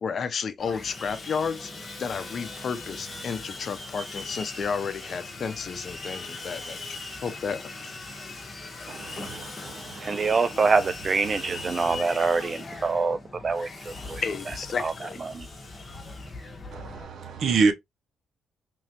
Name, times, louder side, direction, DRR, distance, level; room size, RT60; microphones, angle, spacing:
voice 1, 0.0-7.9 14.2-15.2, left 6 dB, 50° left, 0.7 m, -32 dB
Sawing, 0.6-17.0, left 3 dB, 30° left, 1.4 m, -40 dB
voice 2, 8.9-10.3 11.3-11.4 11.6-12.0 16.7-17.7, right 4 dB, 60° right, 0.9 m, -28 dB
voice 3, 10.0-13.2 13.4-14.2 14.8-14.9 15.2-15.5, right 4 dB, 35° right, 0.3 m, -25 dB
3.7 x 3.1 x 2.9 m
cardioid pair, 90°, 0 cm